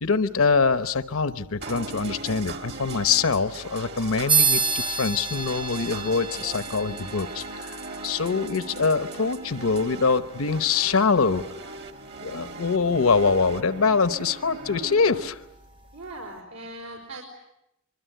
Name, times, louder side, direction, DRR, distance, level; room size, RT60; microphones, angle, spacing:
voice 1, 0.0-11.4 12.2-15.4, left 4 dB, 75° left, 12 dB, 0.9 m, -24 dB
sound 1, 1.6-15.3, right 3 dB, 50° right, 1.8 m, -39 dB
sound 2, 4.3-14.3, right 5 dB, 25° right, 1.0 m, -31 dB
voice 2, 15.9-17.2, right 2 dB, 85° right, -2 dB, 4.6 m, -39 dB
24.5 x 24.0 x 9.2 m, 0.89 s
head